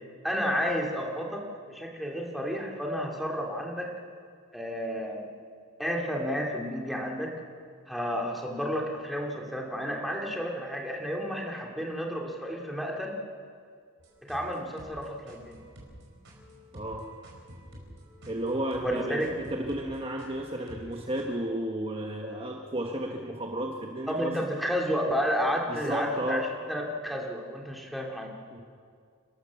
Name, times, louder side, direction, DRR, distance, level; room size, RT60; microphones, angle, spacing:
voice 1, 0.2-3.9 4.5-5.3 5.8-7.3 7.9-13.2 14.3-15.6 18.8-19.3 24.1-28.3, equal, ahead, -1 dB, 2.7 m, -31 dB
sound 1, 14.0-21.2, equal, 60° right, 4.9 m, -50 dB
voice 2, 16.7-17.1 18.3-24.3 25.7-26.4 28.5-28.6, right 1 dB, 25° right, 1 dB, 1.3 m, -33 dB
29.5 x 13.0 x 7.2 m, 2.1 s
head